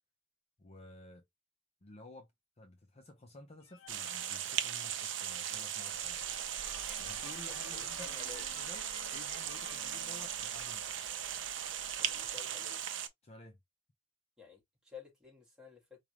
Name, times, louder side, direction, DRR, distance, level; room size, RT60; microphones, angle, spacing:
voice 1, 0.6-1.2 1.8-2.3 2.6-6.2 7.0-8.2 8.5-8.9 9.1-11.0 13.2-13.6, left 2 dB, 35° left, 0.6 m, -53 dB
sound 1, 3.6-5.3 5.8-5.9 6.3-10.8, left 6 dB, 80° left, 0.5 m, -54 dB
sound 2, 3.9-13.1, right 10 dB, 65° right, 0.6 m, -38 dB
sound 3, 5.9-12.4, equal, 15° left, 2.7 m, -58 dB
voice 2, 7.5-8.5 12.0-12.8 14.4-16.0, left 6 dB, 5° right, 1.7 m, -53 dB
4.8 x 2.4 x 3.0 m
head